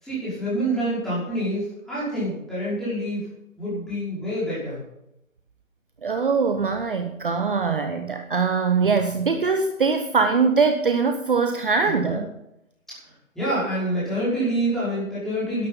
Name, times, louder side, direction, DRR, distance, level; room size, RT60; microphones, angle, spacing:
voice 1, 0.0-3.3 3.6-4.8 11.8-12.2 13.3-15.7, right 1 dB, ahead, -11 dB, 5.3 m, -27 dB
voice 2, 6.0-12.3, right 5 dB, 40° right, 7 dB, 0.9 m, -22 dB
12.0 x 11.0 x 5.5 m, 0.84 s
figure-of-eight pair, 150°, 41 cm